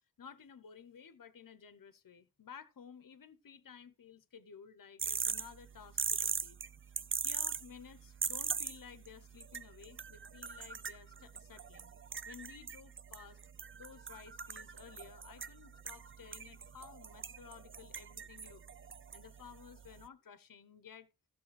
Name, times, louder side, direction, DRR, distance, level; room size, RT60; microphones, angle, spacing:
voice 1, 0.2-6.6 7.0-11.9 12.2-13.4 13.7-18.6 19.1-21.1, left 7 dB, 65° left, 0.8 m, -55 dB
sound 1, 5.0-20.1, right 6 dB, 35° right, 0.5 m, -41 dB
14.5 x 6.6 x 3.2 m
wide cardioid pair, 55°, 36 cm